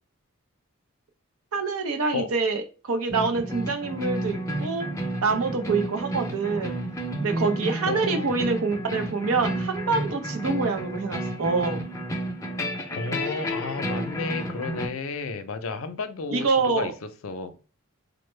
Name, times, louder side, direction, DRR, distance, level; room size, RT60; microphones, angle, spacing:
voice 1, 1.5-4.9 5.2-6.8 7.2-11.8 16.3-16.9, right 4 dB, 85° right, 6 dB, 0.6 m, -26 dB
sound 1, 3.1-14.9, right 1 dB, 15° left, 0.5 m, -31 dB
voice 2, 7.9-8.3 12.9-17.6, left 4 dB, 75° left, 10 dB, 0.5 m, -32 dB
4.2 x 2.0 x 3.2 m, 0.34 s
head